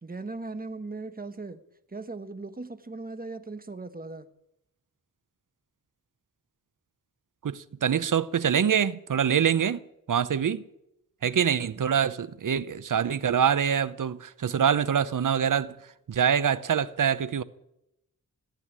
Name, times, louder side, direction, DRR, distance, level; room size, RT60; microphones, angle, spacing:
voice 1, 0.0-1.6 1.9-4.3, right 3 dB, 25° right, 1.2 m, -38 dB
voice 2, 7.4-9.8 10.1-10.6 11.2-15.8 16.1-17.4, right 8 dB, 65° right, 0.8 m, -25 dB
15.5 x 9.4 x 9.9 m
wide cardioid pair, 70°, 34 cm